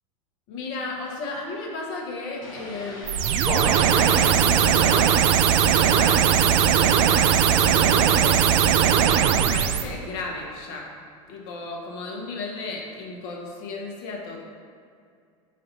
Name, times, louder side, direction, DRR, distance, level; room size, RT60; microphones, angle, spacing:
voice 1, 0.5-3.3 4.0-5.2 5.7-8.5 9.3-10.9 11.3-14.4, left 3 dB, 60° left, -1 dB, 1.6 m, -34 dB
sound 1, 2.4-7.7, left 2 dB, 75° left, 1.6 m, -36 dB
sound 2, 3.1-9.9, right 9 dB, 60° right, 0.5 m, -19 dB
8.2 x 2.9 x 5.4 m, 2.3 s
hypercardioid pair, 95°, 17 cm